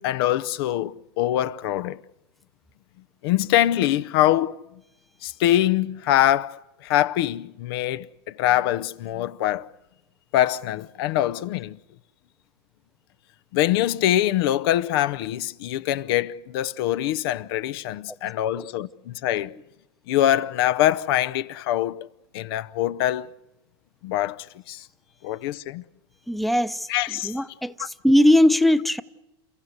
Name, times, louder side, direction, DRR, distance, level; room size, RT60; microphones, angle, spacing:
voice 1, 0.0-2.0 3.2-4.6 5.2-9.7 10.3-11.8 13.5-19.5 20.1-22.1 22.3-23.3 24.0-24.9 25.2-25.8 26.9-27.3 27.8-27.9, left 13 dB, 65° left, 0.7 m, -24 dB
voice 2, 26.3-26.9 27.2-27.7 28.0-29.0, left 1 dB, ahead, 0.8 m, -19 dB
29.0 x 15.0 x 8.1 m
supercardioid pair, 120°, 13 cm